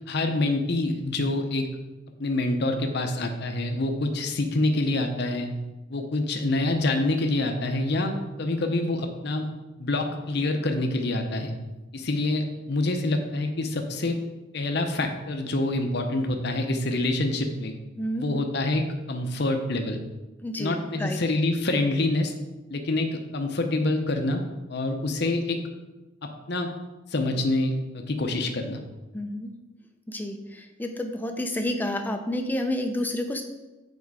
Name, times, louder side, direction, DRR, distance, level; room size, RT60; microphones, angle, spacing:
voice 1, 0.0-1.7 2.2-5.5 5.9-9.5 9.8-11.5 11.9-14.2 14.5-17.7 18.2-20.0 20.6-22.3 22.7-24.4 24.7-25.6 26.2-26.7 27.1-28.8, left 2 dB, 55° left, 4 dB, 0.7 m, -26 dB
voice 2, 20.4-21.2 29.1-29.5 30.1-33.4, left 1 dB, 10° left, 5 dB, 0.5 m, -30 dB
7.3 x 4.5 x 4.7 m, 1.1 s
head